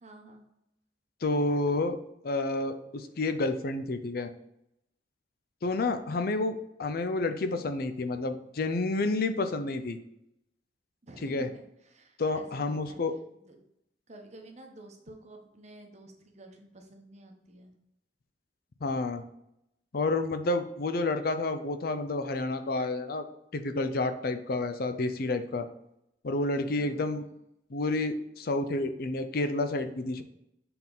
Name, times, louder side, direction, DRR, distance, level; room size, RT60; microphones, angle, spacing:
voice 1, 0.0-0.5 11.0-13.0 13.4-13.6 14.1-17.7 26.6-27.2, right 1 dB, 40° right, 3 dB, 1.0 m, -50 dB
voice 2, 1.2-2.0 2.2-4.3 5.6-10.0 11.2-11.5 12.2-13.1 18.8-19.2 19.9-23.2 23.5-25.7 26.2-27.2 27.7-30.2, left 2 dB, 55° left, 9 dB, 0.5 m, -30 dB
6.9 x 3.6 x 3.9 m, 0.82 s
head